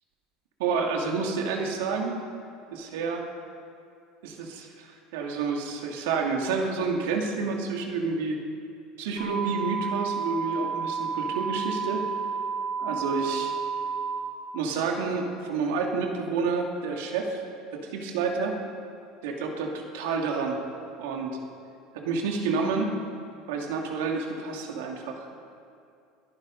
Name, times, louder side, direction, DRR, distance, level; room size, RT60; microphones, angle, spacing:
voice 1, 0.6-2.2 2.7-3.2 4.2-8.4 9.0-12.1 12.8-13.5 14.5-17.4 17.7-18.5 19.2-20.6 21.0-21.4 21.9-22.9 23.5-25.5, right 4 dB, 90° right, 1 dB, 2.5 m, -29 dB
sound 1, 9.2-14.2, right 5 dB, 40° right, 4.5 m, -31 dB
22.0 x 10.5 x 5.4 m, 2.5 s
cardioid pair, 180°, 0 cm